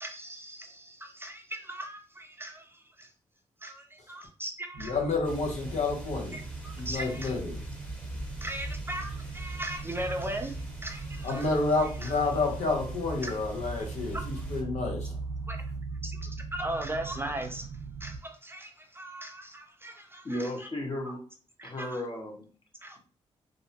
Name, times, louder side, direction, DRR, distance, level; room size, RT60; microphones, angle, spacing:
voice 1, 0.0-3.1 3.6-5.0 6.3-7.3 8.4-11.6 12.0-12.1 13.2-13.3 14.1-14.2 15.5-15.6 16.0-17.7 18.0-20.5 21.6-22.0 22.8-23.0, right 1 dB, 20° right, 0.5 m, -38 dB
sound 1, 4.7-18.2, right 4 dB, 85° right, 0.4 m, -40 dB
voice 2, 4.8-6.4 6.8-7.6 11.2-15.2, left 3 dB, 70° left, 0.9 m, -29 dB
sound 2, 5.2-14.6, right 1 dB, 10° left, 1.0 m, -42 dB
voice 3, 20.2-21.2 21.6-22.4, left 1 dB, 40° left, 1.1 m, -34 dB
2.5 x 2.1 x 2.7 m
supercardioid pair, 50°, 13 cm